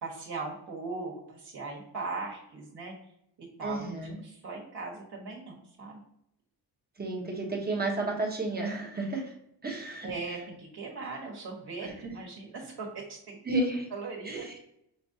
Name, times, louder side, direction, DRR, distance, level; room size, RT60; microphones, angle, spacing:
voice 1, 0.0-2.9 3.4-4.0 4.2-6.0 10.0-13.4 13.9-14.4, right 3 dB, 65° right, -3 dB, 1.3 m, -39 dB
voice 2, 3.6-4.2 7.0-9.3 9.6-10.1 11.8-11.9 13.4-13.9 14.2-14.5, right 2 dB, 20° right, 0 dB, 0.9 m, -32 dB
6.0 x 2.5 x 2.6 m, 0.74 s
wide cardioid pair, 150°, 43 cm